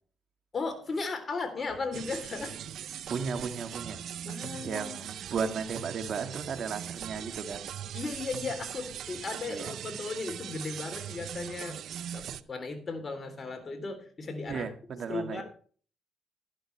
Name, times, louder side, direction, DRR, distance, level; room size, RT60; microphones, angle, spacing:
voice 1, 0.5-2.6 4.2-5.0 7.9-11.8 12.1-14.7 15.1-15.4, left 3 dB, 40° left, 7 dB, 3.4 m, -36 dB
sound 1, 1.9-12.4, right 10 dB, 75° right, 0.6 m, -40 dB
voice 2, 3.1-4.0 4.6-7.7 9.5-9.8 14.5-15.4, right 5 dB, 60° right, 7 dB, 1.8 m, -35 dB
11.5 x 11.5 x 3.3 m, 0.42 s
cardioid pair, 75°, 0 cm